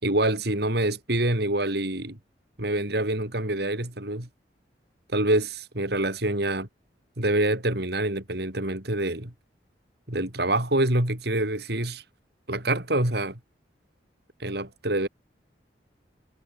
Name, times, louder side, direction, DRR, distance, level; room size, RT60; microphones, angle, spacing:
voice 1, 0.0-2.2 2.6-4.3 5.1-6.7 7.2-9.3 10.1-12.0 12.5-13.4 14.4-15.1, right 1 dB, 60° right, 5.0 m, -26 dB
head